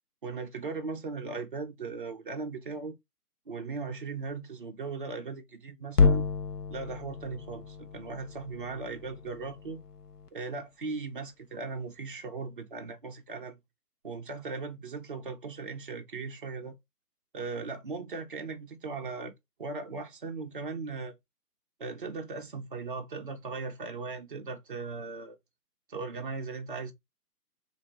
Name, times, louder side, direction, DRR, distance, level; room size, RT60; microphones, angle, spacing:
voice 1, 0.2-2.9 3.5-6.3 6.7-9.8 10.3-13.6 14.0-16.8 17.3-19.3 19.6-21.1 21.8-25.4 25.9-26.9, right 4 dB, 35° right, 0.6 m, -38 dB
sound 1, 5.9-10.3, left 5 dB, 75° left, 0.8 m, -30 dB
3.9 x 2.6 x 4.3 m
hypercardioid pair, 155°, 48 cm